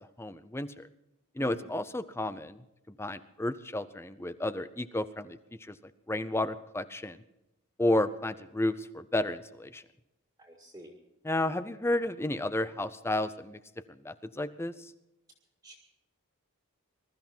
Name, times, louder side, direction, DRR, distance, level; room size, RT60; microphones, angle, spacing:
voice 1, 0.2-0.9 1.4-2.6 2.9-5.8 6.1-7.2 7.8-9.8 11.2-13.6 13.9-14.9, left 1 dB, 10° left, 14 dB, 0.5 m, -32 dB
voice 2, 1.4-1.7 10.4-10.9 15.6-15.7, equal, 15° right, -1 dB, 2.1 m, -48 dB
21.0 x 13.0 x 4.4 m, 0.88 s
head